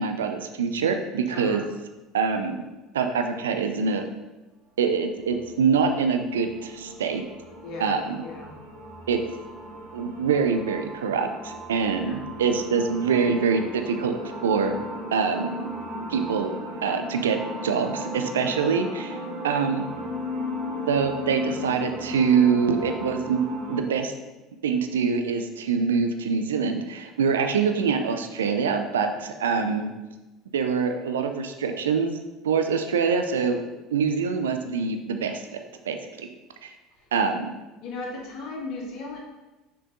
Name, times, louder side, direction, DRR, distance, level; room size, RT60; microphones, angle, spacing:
voice 1, 0.0-1.6 2.1-2.6 2.9-4.1 4.8-7.2 7.8-8.2 9.1-9.2 9.9-14.8 15.1-15.7 16.1-16.5 16.8-19.2 19.4-19.9 20.9-24.1 24.6-29.9 30.5-32.1 32.4-33.6 33.9-35.4 35.9-36.3 36.6-36.7 37.1-37.5, right 5 dB, 75° right, 6 dB, 0.5 m, -25 dB
voice 2, 1.3-1.6 7.6-8.6 12.0-12.2 37.8-39.2, left 3 dB, 55° left, -2 dB, 1.7 m, -36 dB
sound 1, 5.2-23.8, left 1 dB, 45° right, 2.2 m, -36 dB
6.1 x 4.6 x 3.8 m, 1.1 s
figure-of-eight pair, 65°, 0 cm